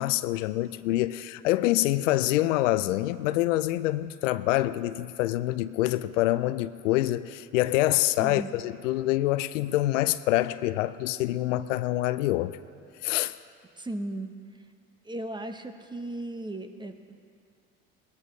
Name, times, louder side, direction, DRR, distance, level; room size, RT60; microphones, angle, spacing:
voice 1, 0.0-12.6 13.0-13.4, left 16 dB, 80° left, 15 dB, 0.5 m, -26 dB
voice 2, 8.2-8.5 13.7-14.6 15.0-17.1, right 1 dB, 10° right, 7 dB, 1.0 m, -36 dB
18.5 x 13.5 x 3.2 m, 2.3 s
hypercardioid pair, 80°, 37 cm